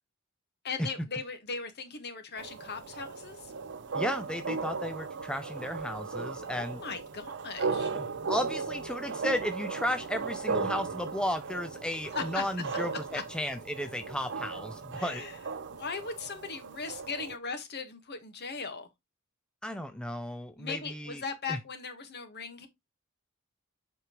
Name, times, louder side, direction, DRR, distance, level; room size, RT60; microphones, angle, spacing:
voice 1, 0.6-3.5 6.5-7.9 12.1-12.4 13.1-13.2 15.0-15.3 15.7-18.9 20.6-22.7, left 5 dB, 50° left, 1.5 m, -38 dB
sound 1, 2.4-17.4, right 4 dB, 60° right, 0.6 m, -36 dB
voice 2, 3.9-6.8 7.9-15.2 19.6-21.2 21.5-21.6, left 1 dB, 5° left, 0.6 m, -34 dB
7.8 x 5.0 x 3.1 m
head